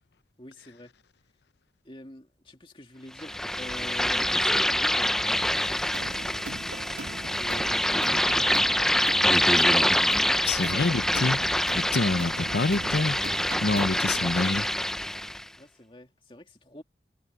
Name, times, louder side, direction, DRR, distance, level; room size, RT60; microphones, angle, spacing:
voice 1, 0.4-0.9 1.8-6.7 7.2-9.6 10.0-10.3 15.6-16.8, left 1 dB, 30° left, 2.4 m, -46 dB
sound 1, 3.2-15.4, left 1 dB, 5° left, 0.5 m, -25 dB
sound 2, 5.9-14.3, right 2 dB, 85° right, 1.4 m, -41 dB
voice 2, 9.6-10.0 10.4-11.4 11.7-13.2 13.6-14.7, left 3 dB, 70° left, 0.7 m, -27 dB
head